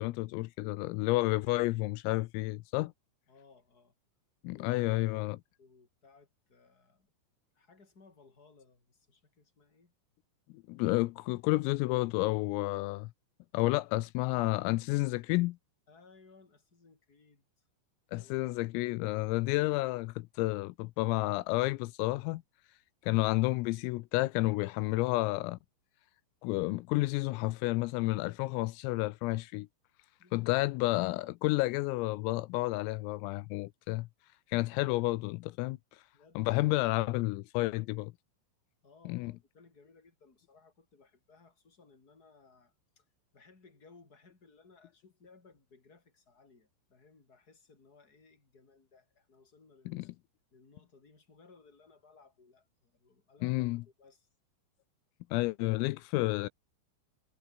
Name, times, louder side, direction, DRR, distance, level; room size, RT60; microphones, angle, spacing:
voice 1, 0.0-2.9 4.5-5.4 10.7-13.1 13.5-15.6 18.1-22.4 23.0-25.6 26.4-29.7 30.3-34.1 34.5-35.8 36.4-38.1 39.1-39.3 49.9-50.1 53.4-53.8 55.3-56.5, left 21 dB, 85° left, 3.4 m, -30 dB
voice 2, 3.3-3.9 4.5-7.1 7.5-9.9 15.9-17.5 18.1-18.6 30.2-30.6 36.1-36.6 38.8-43.0 43.3-50.1 50.5-54.3, left 4 dB, 20° left, 4.8 m, -61 dB
omnidirectional pair, 6.0 m